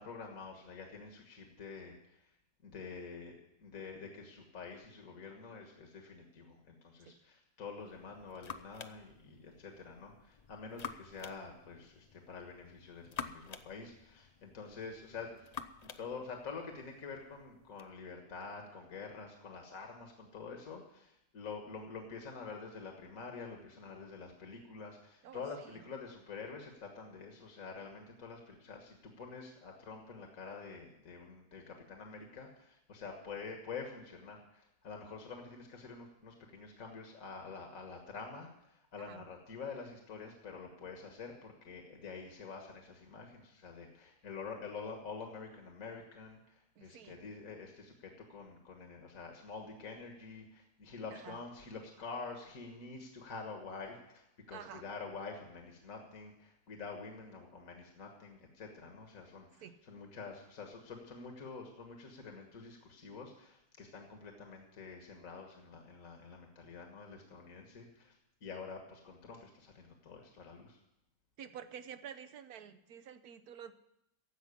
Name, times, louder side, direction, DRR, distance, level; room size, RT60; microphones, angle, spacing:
voice 1, 0.0-2.3 2.6-15.5 15.8-68.2 68.4-70.8, left 4 dB, 60° left, 2 dB, 1.9 m, -47 dB
sound 1, 7.8-17.9, left 6 dB, 85° left, 0.3 m, -50 dB
voice 2, 25.2-25.8 39.0-39.2 46.8-47.2 51.1-51.4 54.5-54.8 59.6-59.8 71.4-73.7, right 8 dB, 70° right, 11 dB, 1.3 m, -50 dB
15.5 x 5.8 x 9.7 m, 0.83 s
omnidirectional pair, 1.7 m